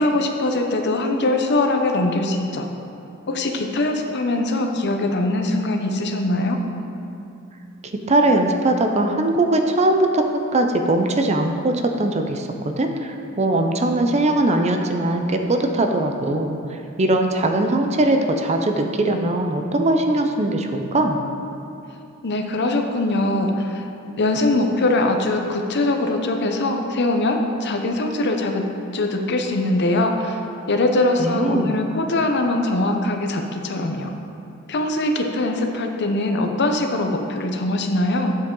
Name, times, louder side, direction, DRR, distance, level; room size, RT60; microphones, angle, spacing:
voice 1, 0.0-2.7 3.3-6.6 22.2-23.9 24.2-28.7 28.9-30.4 30.7-34.1 34.7-38.4, left 2 dB, 55° left, 4 dB, 0.7 m, -22 dB
voice 2, 8.1-10.2 10.5-16.6 17.0-21.2 31.2-31.8, right 2 dB, 35° right, 4 dB, 0.6 m, -20 dB
8.7 x 7.5 x 3.8 m, 2.8 s
head